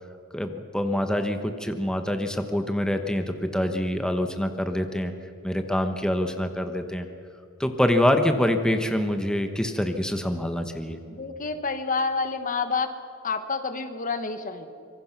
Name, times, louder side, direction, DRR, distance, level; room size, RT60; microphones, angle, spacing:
voice 1, 0.3-5.1 5.4-7.1 7.6-11.0, left 1 dB, 5° left, 6 dB, 1.1 m, -25 dB
voice 2, 11.1-12.9 13.2-14.7, left 4 dB, 40° left, 9 dB, 1.3 m, -28 dB
25.5 x 23.5 x 6.0 m, 2.6 s
head